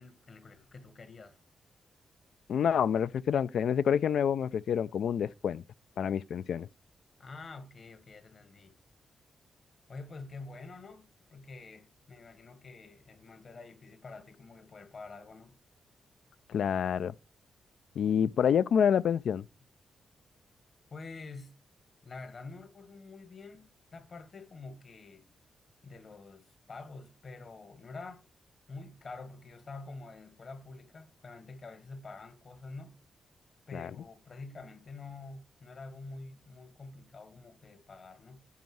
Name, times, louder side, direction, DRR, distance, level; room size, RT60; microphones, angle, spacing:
voice 1, 0.0-1.4 7.2-8.8 9.9-15.6 20.9-21.6 22.0-25.3 25.8-28.2 28.7-33.0 33.7-38.5, left 3 dB, 50° left, 1.7 m, -47 dB
voice 2, 2.5-5.6 6.0-6.7 16.5-17.1 18.0-19.4 33.7-33.9, left 8 dB, 75° left, 0.4 m, -27 dB
9.4 x 4.7 x 7.8 m
cardioid pair, 115°, 0 cm